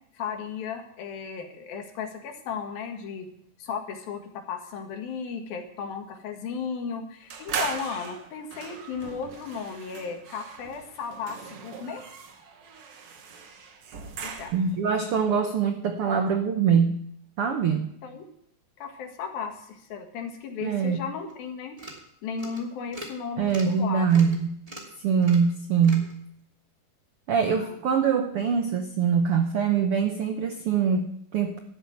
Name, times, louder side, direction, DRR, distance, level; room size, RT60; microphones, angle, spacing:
voice 1, 0.1-3.3 3.6-12.0 14.2-14.5 18.0-18.2 18.8-21.8 22.2-24.0 27.6-27.8, left 6 dB, 85° left, 4 dB, 3.6 m, -35 dB
sound 1, 7.3-14.8, right 6 dB, 55° right, 1.9 m, -39 dB
voice 2, 14.5-17.0 17.4-17.9 20.6-21.0 23.4-24.6 25.0-26.1 27.3-31.6, right 6 dB, 80° right, 5 dB, 1.2 m, -23 dB
sound 2, 21.3-21.4 21.8-22.1 22.4-22.6 22.9-23.2 23.5-23.8 24.1-24.4 24.7-24.9 25.2-25.5 25.8-26.1, equal, 10° right, 2.0 m, -42 dB
12.5 x 8.2 x 8.6 m, 0.70 s
omnidirectional pair, 4.0 m